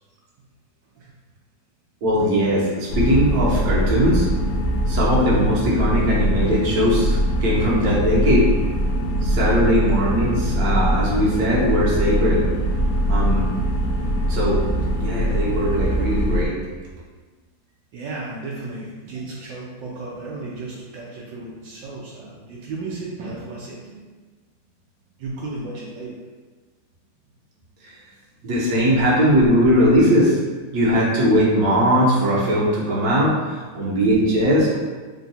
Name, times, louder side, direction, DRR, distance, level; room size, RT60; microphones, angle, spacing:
voice 1, 2.0-4.3 4.9-8.4 9.2-12.4 13.1-13.4 14.3-14.6 15.0-16.5 28.4-30.4 30.7-34.8, equal, 60° right, -6 dB, 1.4 m, -19 dB
sound 1, 2.9-16.5, equal, 70° left, 0.8 m, -22 dB
voice 2, 17.9-24.0 25.2-26.2, right 3 dB, 80° right, -5 dB, 1.3 m, -34 dB
3.7 x 2.3 x 4.1 m, 1.3 s
omnidirectional pair, 2.0 m